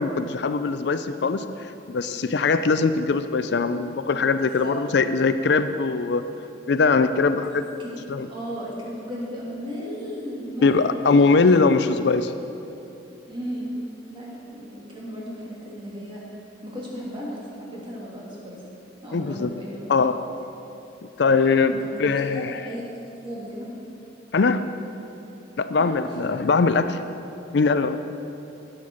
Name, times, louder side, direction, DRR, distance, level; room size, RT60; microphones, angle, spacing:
voice 1, 0.0-1.5 1.9-6.2 6.7-7.6 8.1-8.3 10.6-12.3 19.1-19.5 19.9-20.2 21.2-21.7 22.0-22.6 24.3-24.7 25.6-27.0 27.5-28.0, left 4 dB, 60° left, 11 dB, 0.4 m, -21 dB
voice 2, 4.4-4.8 7.6-11.0 13.3-13.7 14.1-16.2 16.6-18.6 19.0-20.1 21.7-21.9 22.3-23.7 25.7-26.2, equal, 25° right, -6 dB, 2.9 m, -35 dB
12.5 x 8.9 x 6.4 m, 2.8 s
head